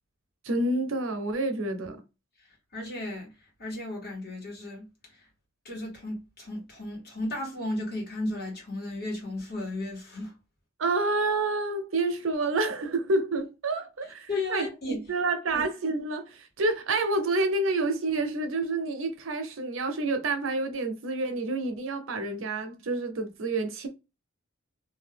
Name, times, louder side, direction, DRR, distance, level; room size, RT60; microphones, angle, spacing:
voice 1, 0.4-2.0 10.8-23.9, right 2 dB, 75° right, 0.7 m, -28 dB
voice 2, 2.4-5.3 5.6-10.3 14.3-15.1 15.5-15.6, left 2 dB, 50° left, 1.5 m, -35 dB
2.8 x 2.3 x 3.4 m
head